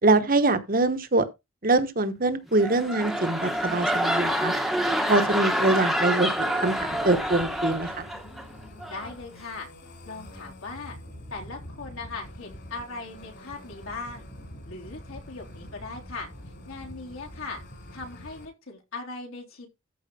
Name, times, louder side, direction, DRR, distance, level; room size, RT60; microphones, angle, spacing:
voice 1, 0.0-1.2 1.6-4.5 5.1-8.1, right 2 dB, 40° right, 1.1 m, -24 dB
sound 1, 2.5-8.4 8.8-9.1, equal, ahead, 1.1 m, -27 dB
sound 2, 2.7-18.5, left 1 dB, 50° left, 3.6 m, -46 dB
voice 2, 8.9-9.7 10.1-11.0 11.3-14.3 14.7-16.3 16.7-17.6 17.9-19.7, left 3 dB, 70° left, 3.8 m, -39 dB
14.0 x 4.8 x 4.2 m
head